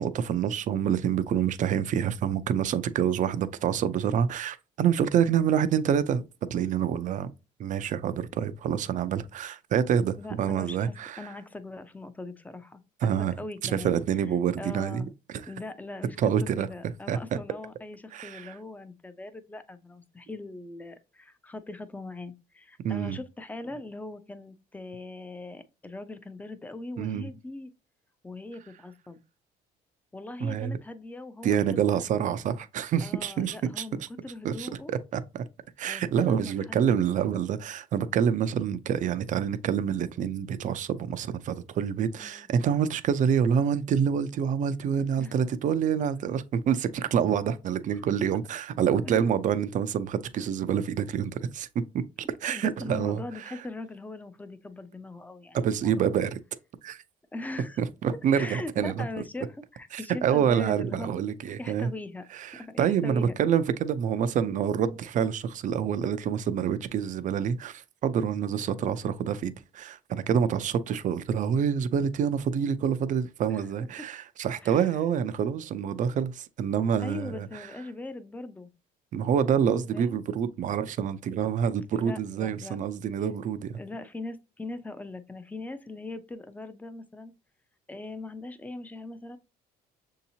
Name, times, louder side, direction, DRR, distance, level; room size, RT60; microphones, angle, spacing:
voice 1, 0.0-6.2 6.5-7.3 7.6-11.3 13.0-13.3 13.6-15.1 15.3-15.4 16.2-16.7 17.1-17.4 18.1-18.6 22.8-23.2 27.0-27.3 30.4-30.8 31.4-34.1 34.4-35.5 35.8-53.5 55.5-56.4 56.8-57.0 57.8-59.1 59.9-61.9 62.3-77.7 79.1-83.8, right 8 dB, 50° right, 0.4 m, -27 dB
voice 2, 10.2-13.1 13.4-13.9 14.6-15.1 15.5-27.7 28.2-29.2 30.1-32.0 33.0-34.9 35.9-36.8 42.2-42.5 45.2-45.3 49.0-49.3 52.5-56.1 57.3-57.8 58.3-61.2 61.6-62.3 62.5-63.3 73.5-73.6 74.6-74.9 77.0-78.7 79.9-80.2 81.9-82.8 83.7-87.3 87.9-89.4, left 2 dB, 10° left, 0.5 m, -40 dB
6.4 x 2.8 x 2.7 m
cardioid pair, 110°, 17 cm